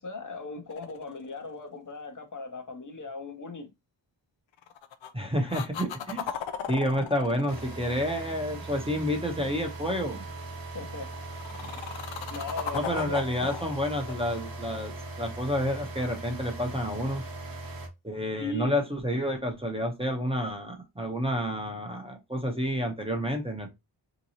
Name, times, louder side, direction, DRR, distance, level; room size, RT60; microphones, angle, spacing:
voice 1, 0.0-3.7 10.7-11.1 12.3-13.3 18.4-18.8, left 3 dB, 45° left, 0.7 m, -38 dB
sound 1, 0.7-1.9 4.6-5.1 5.5-8.8 11.0-15.4 19.1-19.2, left 8 dB, 85° left, 0.6 m, -38 dB
voice 2, 5.1-6.3 6.7-10.3 11.6-11.7 12.7-17.2 18.0-23.7, equal, 15° right, 0.7 m, -29 dB
Car Engine Ignition Running and Turn Off, 7.5-17.9, right 2 dB, 50° right, 0.9 m, -40 dB
3.7 x 2.9 x 2.8 m
wide cardioid pair, 125°, 45 cm